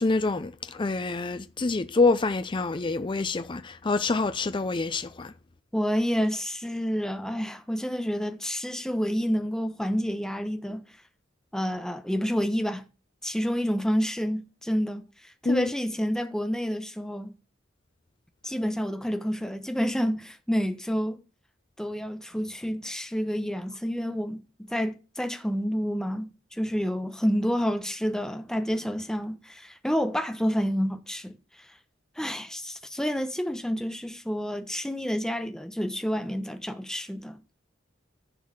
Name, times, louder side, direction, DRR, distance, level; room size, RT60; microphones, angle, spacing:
voice 1, 0.0-5.3 15.5-15.7, left 3 dB, 25° left, 0.5 m, -26 dB
voice 2, 5.7-10.8 11.5-12.8 13.2-17.3 18.4-21.2 21.8-31.4 32.2-37.6, equal, 5° left, 1.0 m, -29 dB
11.0 x 4.7 x 7.2 m
head